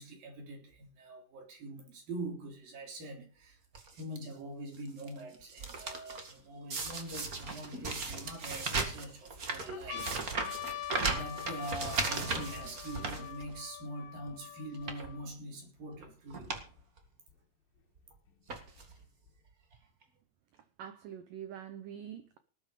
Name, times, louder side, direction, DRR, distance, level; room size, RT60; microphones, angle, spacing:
voice 1, 0.0-3.6 3.9-10.3 10.6-16.5, right 1 dB, 55° right, 5.2 m, -44 dB
sound 1, 3.7-4.2 4.7-5.1 5.3-6.3 6.7-13.8 14.2-14.3 14.7-15.1 15.9-16.0 16.3-16.7 17.0-17.1 18.0-18.1 18.5-19.0 19.7-19.8 20.0-20.1, right 4 dB, 70° right, 0.8 m, -37 dB
sound 2, 5.4-5.5 6.2-7.4 8.1-8.9 9.4-9.5 9.7-15.3 16.1-16.2 16.3-17.3 18.3-19.3, left 12 dB, 80° left, 3.7 m, -45 dB
voice 2, 20.8-22.4, right 9 dB, 90° right, 1.9 m, -45 dB
19.0 x 9.5 x 5.0 m
omnidirectional pair, 5.1 m